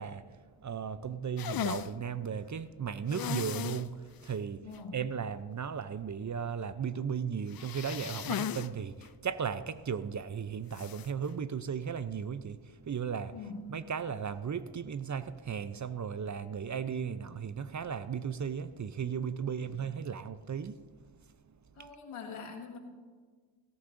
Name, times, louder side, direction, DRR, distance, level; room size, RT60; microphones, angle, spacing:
voice 1, 0.0-4.7 4.9-13.4 13.7-20.9, right 7 dB, 40° right, 0.6 m, -36 dB
sound 1, 1.4-1.9 3.1-3.9 4.2-4.3 4.7-4.8 7.5-8.7 9.0-9.1 10.7-11.1, left 10 dB, 50° left, 0.5 m, -36 dB
voice 2, 4.6-5.0 13.3-13.8 19.7-19.8 21.8-22.8, left 4 dB, 85° left, 1.9 m, -43 dB
17.5 x 14.0 x 2.6 m
cardioid pair, 55°, 49 cm